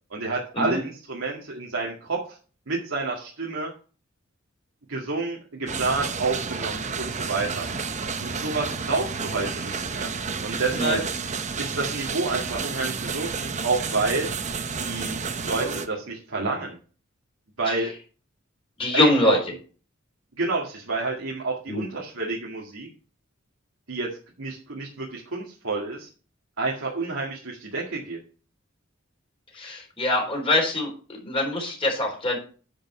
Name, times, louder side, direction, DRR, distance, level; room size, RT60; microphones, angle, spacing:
voice 1, 0.1-2.2 2.7-3.7 4.9-7.7 8.2-10.1 10.4-11.0 11.6-14.3 14.8-15.2 15.4-16.8 17.6-17.9 18.9-19.4 20.4-22.9 23.9-24.1 24.4-26.1 26.6-28.2, right 3 dB, 85° right, -3 dB, 2.0 m, -29 dB
sound 1, 5.7-15.9, right 5 dB, 35° right, 0.8 m, -31 dB
voice 2, 18.8-19.4 21.7-21.8 29.5-32.4, left 1 dB, 30° left, 1 dB, 3.7 m, -24 dB
10.5 x 5.4 x 5.5 m, 0.38 s
head